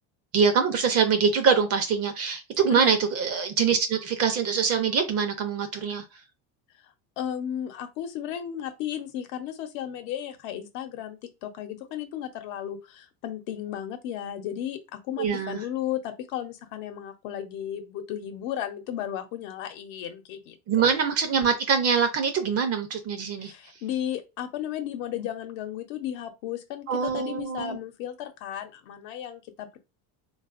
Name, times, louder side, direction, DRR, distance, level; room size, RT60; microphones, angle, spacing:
voice 1, 0.3-6.0 15.2-15.6 20.7-23.5 26.9-27.8, right 6 dB, 35° right, 0.6 m, -24 dB
voice 2, 7.2-14.8 15.0-20.9 23.4-29.8, left 10 dB, 70° left, 0.9 m, -34 dB
3.4 x 2.3 x 2.4 m
supercardioid pair, 135°, 44 cm